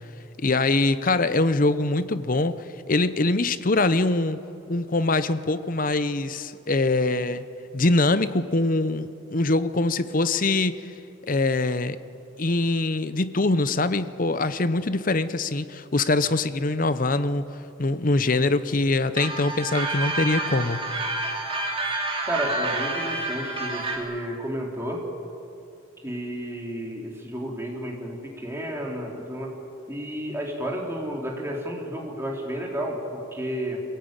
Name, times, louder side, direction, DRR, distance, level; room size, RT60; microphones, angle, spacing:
voice 1, 0.4-4.4 4.7-7.4 7.7-10.8 11.2-12.0 12.4-17.5 17.8-20.8, left 2 dB, 45° left, 13 dB, 0.8 m, -23 dB
sound 1, 19.2-24.0, right 2 dB, 30° right, 3.3 m, -29 dB
voice 2, 22.3-25.0 26.0-29.5 29.9-33.8, equal, 15° right, -1 dB, 3.3 m, -31 dB
24.0 x 17.0 x 9.0 m, 2.7 s
head